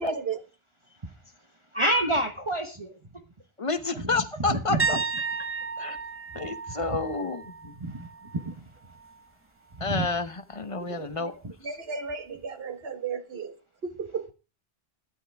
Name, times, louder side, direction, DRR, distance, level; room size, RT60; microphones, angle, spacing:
voice 1, 0.0-0.4 10.9-11.1 11.6-13.5 13.8-14.3, right 5 dB, 70° right, 1.6 m, -34 dB
voice 2, 1.7-3.2 3.9-4.1 4.5-4.8 7.8-8.5 9.7-10.0, right 1 dB, 30° right, 1.1 m, -28 dB
voice 3, 3.6-5.0 5.8-6.0 6.3-7.7 9.8-11.3 11.6-11.8, left 3 dB, 35° left, 1.0 m, -30 dB
sound 1, 4.8-8.5 8.9-9.2 12.1-12.2, right 4 dB, 15° right, 0.7 m, -33 dB
13.0 x 10.5 x 3.5 m
omnidirectional pair, 1.0 m